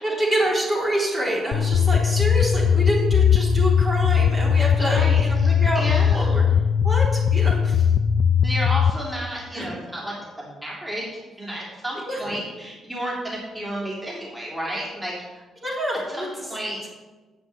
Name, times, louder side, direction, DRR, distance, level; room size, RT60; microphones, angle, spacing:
voice 1, 0.0-5.8 6.1-6.4 6.8-7.9 9.5-9.7 12.1-12.2 15.6-16.3, right 1 dB, 30° right, -4 dB, 3.7 m, -26 dB
sound 1, 1.5-8.9, left 7 dB, 60° left, 0.4 m, -19 dB
voice 2, 4.8-6.4 8.4-15.3 15.9-16.9, equal, 10° right, -5 dB, 3.5 m, -32 dB
7.9 x 7.2 x 8.1 m, 1.2 s
cardioid pair, 90°, 0 cm